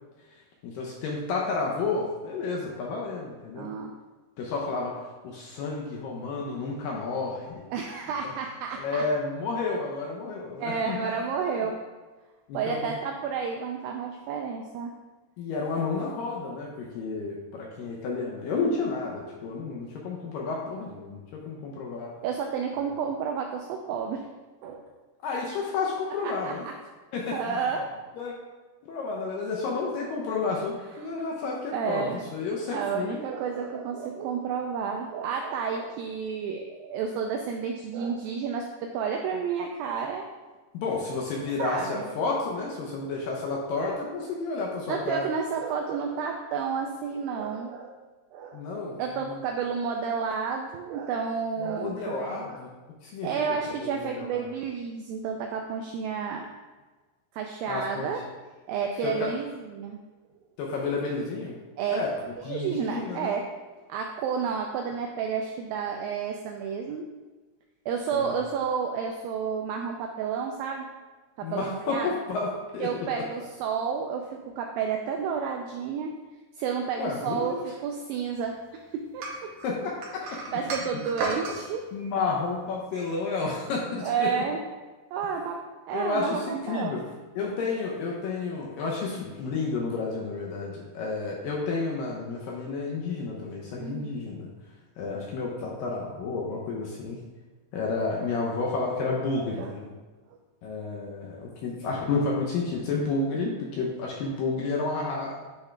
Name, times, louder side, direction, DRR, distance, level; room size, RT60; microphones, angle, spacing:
voice 1, 0.6-3.7 4.4-4.9 5.2-7.5 8.8-11.7 12.5-12.9 15.4-21.2 21.5-22.1 25.2-26.6 27.1-27.6 28.2-28.3 28.9-33.2 40.7-45.2 48.5-48.9 49.2-49.4 51.6-52.7 53.0-53.3 53.8-54.3 57.7-58.1 59.0-59.3 60.6-61.5 61.9-62.1 62.5-63.3 68.1-68.3 71.4-73.1 77.0-77.5 79.6-80.6 81.9-84.3 85.9-87.0 87.4-94.5 95.0-97.2 97.7-99.9 100.6-105.4, left 3 dB, 75° left, -2 dB, 2.1 m, -31 dB
voice 2, 3.6-3.9 7.7-9.1 10.6-11.8 12.5-14.9 22.2-24.3 24.6-24.9 26.2-26.6 27.3-27.9 31.0-31.1 31.7-32.3 32.7-40.3 41.5-42.1 44.9-47.9 48.3-48.6 49.0-52.6 53.2-56.5 57.3-58.2 58.7-60.0 61.8-62.1 62.4-63.4 63.9-67.1 67.9-70.9 71.4-72.1 72.8-76.1 76.5-79.5 80.2-81.8 84.0-84.6 85.1-85.6 85.9-87.0 93.8-94.2 99.6-99.7, right 6 dB, 85° right, 2 dB, 2.0 m, -31 dB
sound 1, 79.2-81.6, right 3 dB, 65° right, 2.4 m, -33 dB
9.8 x 3.6 x 3.3 m, 1.3 s
omnidirectional pair, 4.6 m